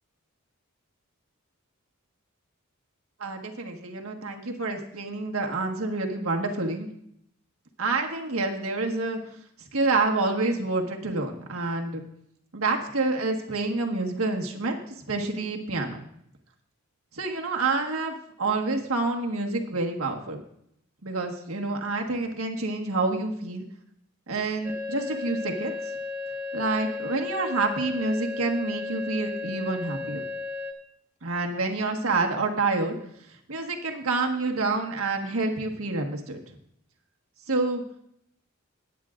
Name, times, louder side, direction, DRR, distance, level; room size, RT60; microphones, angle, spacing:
voice 1, 3.2-6.9 7.8-9.2 9.7-12.0 12.5-16.0 17.1-20.4 21.0-23.6 24.3-25.7 26.5-30.2 31.2-33.0 33.5-36.6 37.5-37.8, right 3 dB, 80° right, 2 dB, 1.6 m, -28 dB
sound 1, 24.6-30.7, left 3 dB, 5° right, 1.3 m, -34 dB
19.5 x 9.3 x 2.5 m, 0.72 s
head